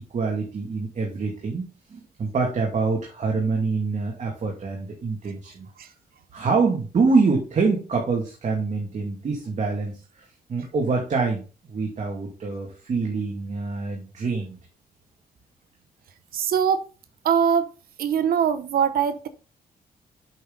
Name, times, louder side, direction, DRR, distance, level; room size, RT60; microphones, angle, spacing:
voice 1, 0.1-5.7 6.3-11.4 11.7-14.6, right 4 dB, 50° right, 2.3 m, -25 dB
voice 2, 16.3-16.9 17.2-17.7 18.0-19.3, right 7 dB, 75° right, 0.8 m, -22 dB
8.0 x 5.8 x 4.0 m
cardioid pair, 100°, 15 cm